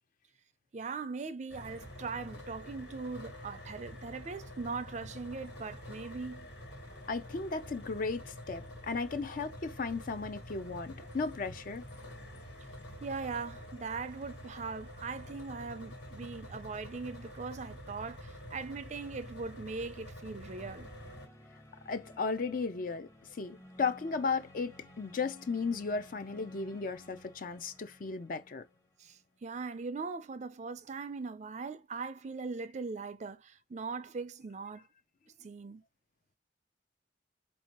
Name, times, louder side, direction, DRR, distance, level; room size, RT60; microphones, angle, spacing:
voice 1, 0.7-6.5 13.0-20.9 29.0-34.9 35.4-35.8, right 4 dB, 40° right, 0.4 m, -40 dB
sound 1, 1.5-21.3, equal, 75° left, 1.7 m, -47 dB
voice 2, 7.1-11.9 21.9-23.1 23.4-28.6, left 4 dB, 50° left, 0.5 m, -35 dB
sound 2, 20.4-29.3, left 1 dB, 15° left, 0.8 m, -56 dB
4.3 x 2.7 x 2.9 m
head